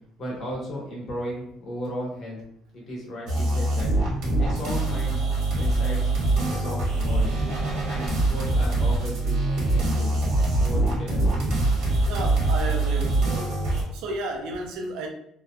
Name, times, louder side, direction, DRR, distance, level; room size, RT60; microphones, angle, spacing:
voice 1, 0.2-2.4 2.9-3.9 4.4-5.2 5.6-7.4 7.9-10.2 10.6-11.6, equal, 45° left, -3 dB, 1.0 m, -35 dB
sound 1, 3.3-13.8, right 2 dB, 75° right, 1.0 m, -24 dB
voice 2, 12.0-13.6 13.9-15.1, right 2 dB, 90° right, 2 dB, 0.4 m, -32 dB
2.7 x 2.1 x 2.4 m, 0.70 s
cardioid pair, 145°, 0 cm